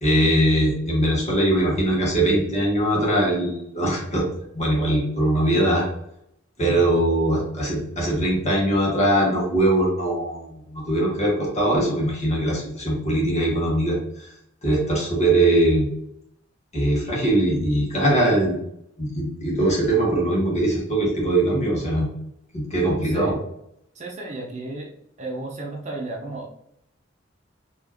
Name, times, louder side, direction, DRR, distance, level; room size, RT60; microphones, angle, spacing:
voice 1, 0.0-4.2 4.5-5.8 6.6-14.3 14.6-15.9 16.7-18.6 19.0-22.1 22.5-23.3, right 1 dB, 35° left, -4 dB, 1.5 m, -21 dB
voice 2, 23.0-23.4 23.9-24.9 25.2-26.6, right 2 dB, 35° right, 0 dB, 0.8 m, -33 dB
4.4 x 2.9 x 2.9 m, 0.76 s
head